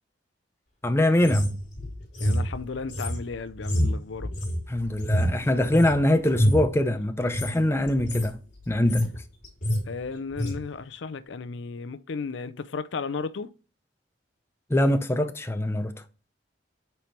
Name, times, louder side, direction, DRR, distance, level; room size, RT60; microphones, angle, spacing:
voice 1, 0.8-1.4 4.7-8.4 8.7-9.1 14.7-15.9, left 1 dB, 15° left, 0.6 m, -23 dB
sound 1, 1.2-6.0 6.3-6.7 7.2-7.5 7.9-8.3 8.6-9.2 9.4-9.8 10.4-10.6, equal, 40° left, 3.0 m, -26 dB
voice 2, 2.2-4.3 9.9-13.5, left 4 dB, 85° left, 0.5 m, -34 dB
8.3 x 4.5 x 3.2 m
head